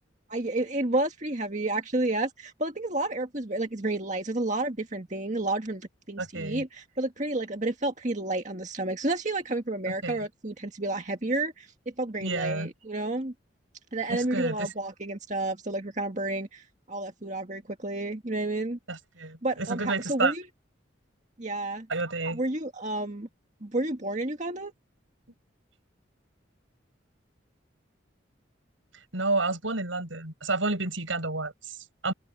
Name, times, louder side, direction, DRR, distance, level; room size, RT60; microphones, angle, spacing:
voice 1, 0.3-11.7 12.0-13.3 13.9-18.8 19.4-20.4 21.4-21.9 22.3-23.3 23.6-24.7, right 2 dB, 40° right, 1.9 m, -30 dB
voice 2, 6.2-6.6 9.9-10.2 12.2-12.7 14.1-14.7 18.9-20.3 21.9-22.4 29.1-32.1, right 3 dB, 85° right, 7.9 m, -30 dB
open air
head